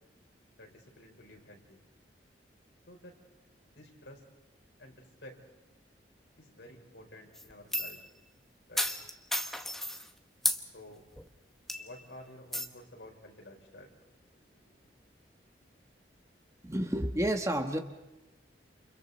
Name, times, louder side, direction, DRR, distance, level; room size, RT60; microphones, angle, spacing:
voice 1, 0.5-1.8 2.9-3.1 3.6-4.2 4.8-5.4 6.4-8.0 8.7-8.9 10.7-11.1 11.7-14.0 14.2-14.9, left 1 dB, 75° left, 1 dB, 4.7 m, -52 dB
sound 1, 7.3-8.0 8.8-10.1 10.4-10.6 11.2-11.3 11.7-12.0 12.5-12.7, left 1 dB, ahead, 1.1 m, -33 dB
voice 2, 16.6-17.8, right 1 dB, 15° right, 5 dB, 1.3 m, -30 dB
29.0 x 28.5 x 4.2 m, 1.0 s
head